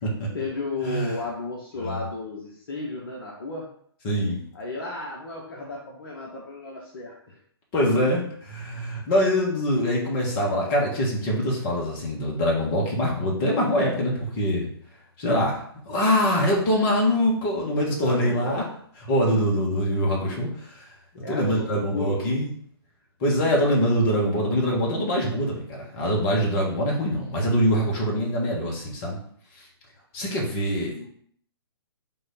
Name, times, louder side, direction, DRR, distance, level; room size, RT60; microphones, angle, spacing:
voice 1, 0.3-3.7 4.5-7.4 18.0-18.7 21.1-22.3 30.9-31.0, left 3 dB, 55° left, -2 dB, 1.1 m, -33 dB
voice 2, 4.0-4.4 7.7-14.7 15.2-15.6 15.9-18.6 19.1-20.9 21.3-22.5 23.2-29.2 29.5-29.6 30.1-31.0, equal, 30° left, -3 dB, 1.6 m, -24 dB
3.9 x 3.2 x 4.2 m, 0.63 s
figure-of-eight pair, 130°, 14 cm